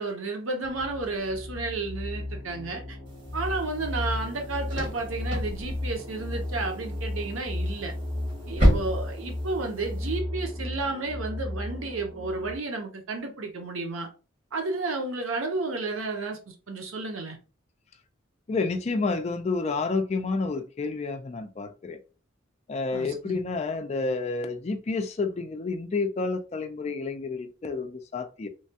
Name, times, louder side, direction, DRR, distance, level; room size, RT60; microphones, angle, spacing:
voice 1, 0.0-3.0 3.3-7.9 8.5-14.1 14.5-17.4 22.9-23.4, right 3 dB, 90° right, 0.7 m, -32 dB
sound 1, 0.6-12.6, left 1 dB, 15° right, 0.9 m, -34 dB
sound 2, 3.1-10.2, equal, 40° right, 1.5 m, -31 dB
voice 2, 18.5-22.0 22.7-28.5, left 3 dB, 35° left, 0.3 m, -29 dB
3.1 x 2.2 x 2.7 m
head